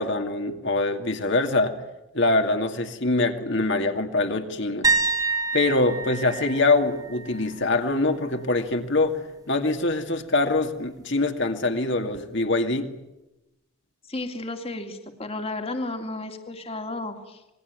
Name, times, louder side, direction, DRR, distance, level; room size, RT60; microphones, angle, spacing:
voice 1, 0.0-1.7 2.1-4.9 5.5-12.9, left 2 dB, 55° left, 5 dB, 2.3 m, -24 dB
sound 1, 4.8-8.6 8.9-9.3 12.1-12.2, right 4 dB, 15° right, 1.8 m, -28 dB
voice 2, 14.1-17.4, left 2 dB, 30° left, 6 dB, 2.3 m, -33 dB
27.0 x 21.5 x 9.5 m, 0.93 s
head